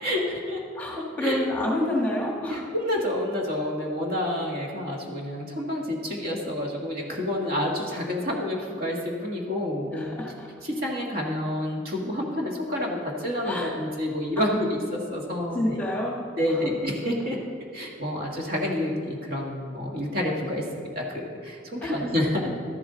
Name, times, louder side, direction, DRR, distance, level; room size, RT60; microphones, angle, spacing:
voice 1, 0.0-0.6 0.9-1.4 2.5-10.1 10.6-15.8 16.4-17.4 17.7-20.7 20.9-22.5, left 1 dB, 50° right, -1 dB, 1.7 m, -29 dB
voice 2, 0.7-2.7 9.9-10.5 13.3-13.7 14.4-14.6 15.5-16.2 16.5-16.6 21.8-22.0, left 1 dB, 10° left, -3 dB, 1.6 m, -28 dB
13.0 x 11.5 x 3.9 m, 2.3 s
head